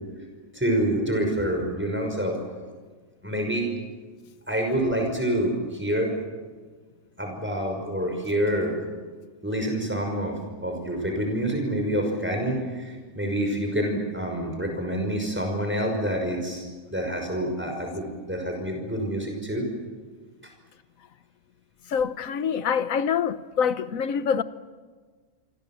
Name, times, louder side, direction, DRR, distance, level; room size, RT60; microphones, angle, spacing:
voice 1, 0.5-2.4 3.2-3.7 4.5-6.1 7.2-8.8 9.4-16.6 16.9-19.7, right 1 dB, 10° right, 6.0 m, -27 dB
voice 2, 21.9-24.4, left 7 dB, 85° left, 1.4 m, -25 dB
27.0 x 25.0 x 7.6 m
omnidirectional pair, 1.4 m